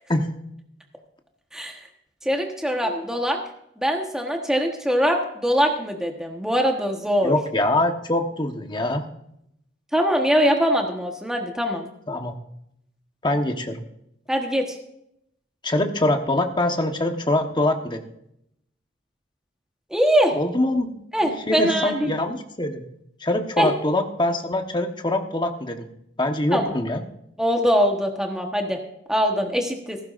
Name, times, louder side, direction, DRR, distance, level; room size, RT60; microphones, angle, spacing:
voice 1, 2.2-3.4 3.8-7.3 9.9-11.9 14.3-14.7 19.9-20.3 21.1-22.1 23.6-23.7 26.5-26.7 27.4-28.8 29.1-30.0, equal, 5° right, 2 dB, 1.2 m, -22 dB
voice 2, 7.2-9.1 12.1-12.3 13.2-13.8 15.6-18.0 20.3-20.9 21.2-22.8 23.2-25.9 26.2-27.0, left 1 dB, 25° left, 5 dB, 1.2 m, -24 dB
16.0 x 14.5 x 2.5 m, 0.76 s
head